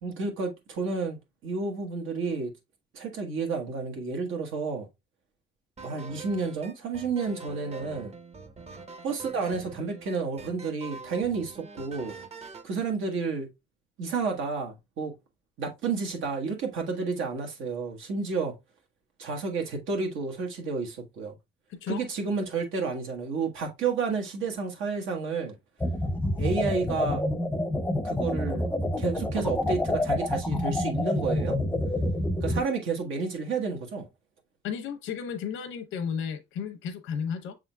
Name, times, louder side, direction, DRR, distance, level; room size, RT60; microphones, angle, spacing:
voice 1, 0.0-2.5 2.9-4.9 5.8-8.1 9.0-12.1 12.6-13.5 14.0-15.1 15.6-18.5 19.2-21.3 21.9-25.5 26.4-27.2 28.0-28.6 29.0-31.6 32.4-34.0, right 4 dB, 85° right, 1.3 m, -31 dB
sound 1, 5.8-12.7, right 4 dB, 30° right, 0.7 m, -44 dB
voice 2, 21.7-22.0 34.6-37.5, left 7 dB, 85° left, 0.8 m, -33 dB
sound 2, 25.8-32.6, left 1 dB, 10° left, 0.5 m, -28 dB
6.2 x 3.7 x 2.2 m
cardioid pair, 90°, 20 cm